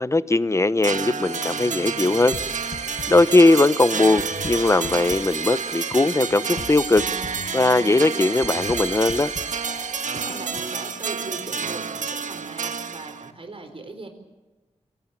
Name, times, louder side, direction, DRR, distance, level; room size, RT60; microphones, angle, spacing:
voice 1, 0.0-2.4 3.1-7.1 7.5-9.3, left 2 dB, 25° left, 15 dB, 0.9 m, -19 dB
sound 1, 0.8-13.3, right 6 dB, 85° right, 1.4 m, -30 dB
sound 2, 1.2-11.1, right 5 dB, 70° right, 2.3 m, -36 dB
sound 3, 2.3-10.8, left 4 dB, 60° left, 1.2 m, -41 dB
voice 2, 10.1-14.1, right 3 dB, 45° right, 7 dB, 4.2 m, -39 dB
26.0 x 17.5 x 7.4 m, 1.2 s
wide cardioid pair, 80°, 13 cm